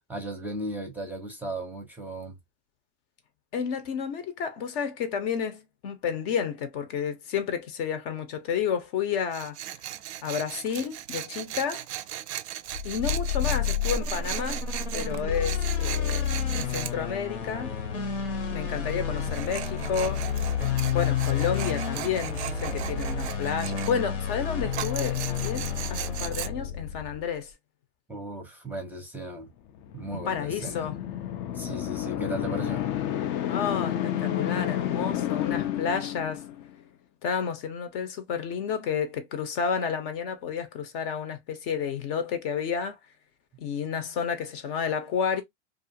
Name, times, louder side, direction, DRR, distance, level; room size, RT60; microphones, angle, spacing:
voice 1, 0.1-2.4 28.1-29.5 29.9-30.9 31.5-32.9, right 1 dB, 5° right, 0.7 m, -36 dB
voice 2, 3.5-9.6 10.2-11.8 12.8-14.6 14.9-16.3 16.5-17.7 18.5-20.2 20.9-27.5 30.1-30.9 33.5-36.4 37.2-42.9 43.6-45.4, left 7 dB, 50° left, 0.8 m, -31 dB
Tools, 9.3-16.9 19.2-23.9 24.7-26.5, right 13 dB, 75° right, 0.5 m, -37 dB
sound 1, 12.7-27.3, left 7 dB, 85° left, 1.2 m, -30 dB
sound 2, 29.8-36.7, left 11 dB, 35° left, 0.4 m, -30 dB
2.5 x 2.4 x 2.7 m
hypercardioid pair, 125°, 34 cm